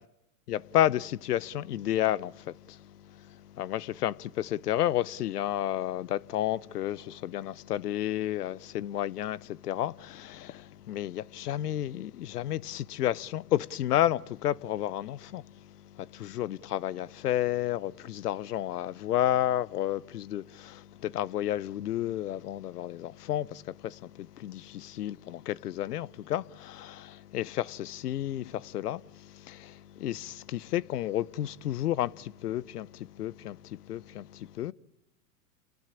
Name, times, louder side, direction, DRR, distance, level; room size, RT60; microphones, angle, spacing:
voice 1, 0.5-15.6 15.9-34.7, left 12 dB, 80° left, 0.9 m, -31 dB
28.5 x 19.0 x 8.6 m
hypercardioid pair, 125°, 46 cm